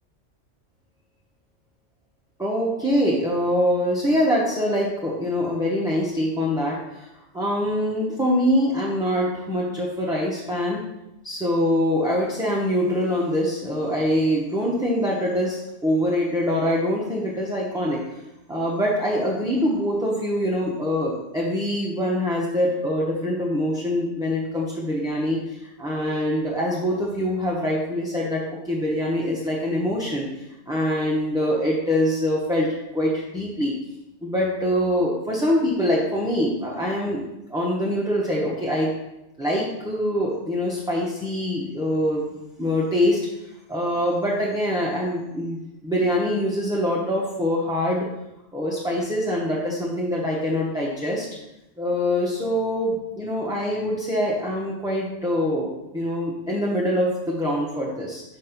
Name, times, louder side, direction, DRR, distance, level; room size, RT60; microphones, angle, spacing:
voice 1, 2.4-7.1 7.3-10.8 11.2-18.0 18.5-30.3 30.7-33.7 34.2-38.9 39.4-42.3 42.6-43.2 43.7-48.1 48.5-51.2 51.8-58.2, equal, 5° right, -5 dB, 0.8 m, -24 dB
5.3 x 4.1 x 5.9 m, 0.92 s
omnidirectional pair, 1.2 m